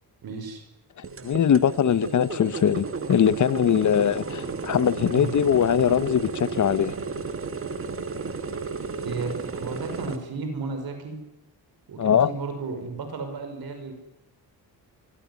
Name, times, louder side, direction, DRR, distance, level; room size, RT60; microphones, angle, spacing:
voice 1, 0.2-0.6 5.1-5.3 8.2-8.5 9.0-11.2 11.9-13.9, right 4 dB, 70° right, 5.7 m, -34 dB
sound 1, 1.0-10.2, right 4 dB, 35° right, 1.8 m, -33 dB
voice 2, 1.2-6.9 12.0-12.3, left 9 dB, 50° left, 1.0 m, -21 dB
25.5 x 17.5 x 9.8 m
cardioid pair, 120°, 38 cm